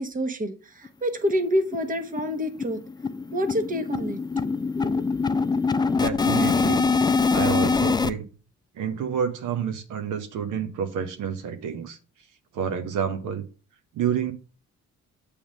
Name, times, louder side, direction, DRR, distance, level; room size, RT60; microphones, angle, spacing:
voice 1, 0.0-2.8 3.3-4.2 4.8-5.0, equal, 25° right, 1.2 m, -27 dB
sound 1, 0.8-0.9 1.3-1.4 1.7-1.9 2.2-8.1, left 4 dB, 15° left, 0.4 m, -24 dB
voice 2, 5.9-6.9 7.3-8.3 8.8-12.0 12.5-13.4 13.9-14.3, right 7 dB, 85° right, 1.1 m, -28 dB
7.1 x 3.5 x 6.3 m
cardioid pair, 90°, 30 cm